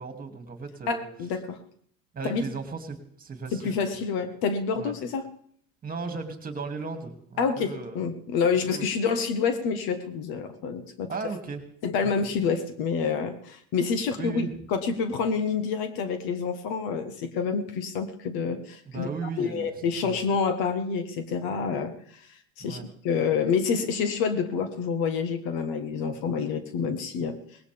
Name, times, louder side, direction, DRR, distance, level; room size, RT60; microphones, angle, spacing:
voice 1, 0.0-1.0 2.1-3.9 4.8-4.9 5.8-8.0 8.7-8.8 11.1-11.6 12.0-12.3 14.2-14.5 18.9-20.4 22.6-22.9, right 4 dB, 20° right, 5 dB, 2.6 m, -36 dB
voice 2, 0.9-1.6 2.2-2.4 3.6-5.3 7.4-11.1 11.8-19.1 19.4-21.9 22.6-22.8 23.0-27.4, left 5 dB, 60° left, 9 dB, 1.5 m, -28 dB
19.0 x 17.0 x 3.5 m, 0.66 s
supercardioid pair, 105°, 42 cm